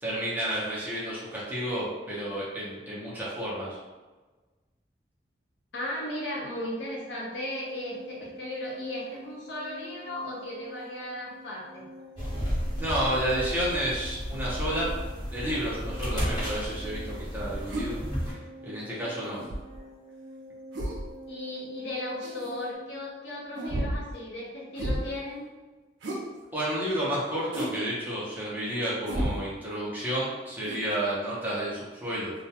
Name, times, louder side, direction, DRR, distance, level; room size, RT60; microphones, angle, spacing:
voice 1, 0.0-3.8 12.8-14.9 15.3-18.0 18.6-19.4 26.5-32.3, right 1 dB, 10° right, -8 dB, 0.6 m, -31 dB
voice 2, 5.7-11.9 21.3-25.5, left 1 dB, 70° left, -4 dB, 0.6 m, -36 dB
sound 1, 7.6-22.7, equal, 60° right, 0.8 m, -47 dB
sound 2, 12.1-18.3, equal, 25° left, 1.1 m, -33 dB
sound 3, 17.7-17.9 19.2-19.8 20.7-21.1 22.2-22.5 23.5-24.1 24.8-25.1 26.0-26.2 27.5-27.8 29.1-29.4 30.6-30.8, right 1 dB, 80° right, 0.5 m, -32 dB
2.2 x 2.2 x 2.7 m, 1.3 s
head